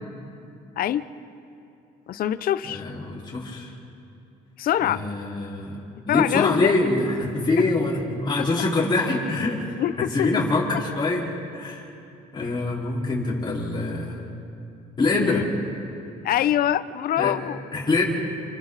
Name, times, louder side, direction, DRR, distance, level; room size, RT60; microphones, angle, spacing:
voice 1, 0.8-1.1 2.1-2.8 4.6-5.0 6.1-6.7 7.6-7.7 9.8-10.3 10.7-10.8 12.4-12.5 15.2-15.4 16.2-17.6, left 11 dB, 60° left, 14 dB, 0.7 m, -24 dB
voice 2, 2.7-3.7 4.8-9.7 10.0-11.2 11.5-11.9 12.3-14.3 15.0-15.5 17.2-17.3 17.7-18.0, left 2 dB, 25° left, -6 dB, 4.6 m, -25 dB
28.5 x 28.5 x 4.1 m, 2.7 s
cardioid pair, 110°, 17 cm